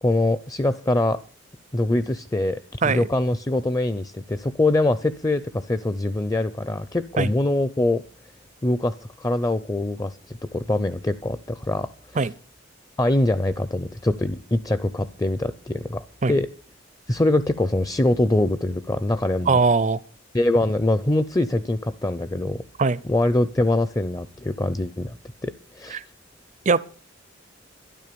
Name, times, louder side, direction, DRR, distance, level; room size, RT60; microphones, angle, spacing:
voice 1, 0.0-1.2 1.7-8.0 8.6-10.2 10.5-12.2 13.0-16.5 17.1-19.6 20.3-22.6 23.0-25.2 25.4-26.0, left 1 dB, 20° left, 0.6 m, -23 dB
voice 2, 19.5-20.0 22.8-23.0 25.9-26.0 26.7-26.9, right 4 dB, 40° right, 0.5 m, -20 dB
12.5 x 11.0 x 6.9 m
head